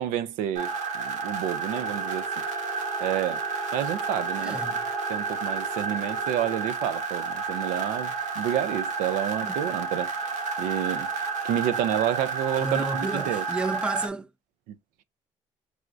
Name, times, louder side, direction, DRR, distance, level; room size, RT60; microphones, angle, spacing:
voice 1, 0.0-2.3 3.0-3.4 3.7-4.6 5.1-10.1 10.6-13.4 14.7-14.8, right 11 dB, 85° right, 0.4 m, -29 dB
sound 1, 0.6-14.1, right 4 dB, 70° right, 0.9 m, -31 dB
Telephone, 1.7-6.7, left 8 dB, 55° left, 0.6 m, -45 dB
voice 2, 4.4-4.9 9.5-9.6 12.6-14.3, right 3 dB, 5° right, 0.3 m, -31 dB
4.7 x 2.0 x 2.5 m
supercardioid pair, 80°, 13 cm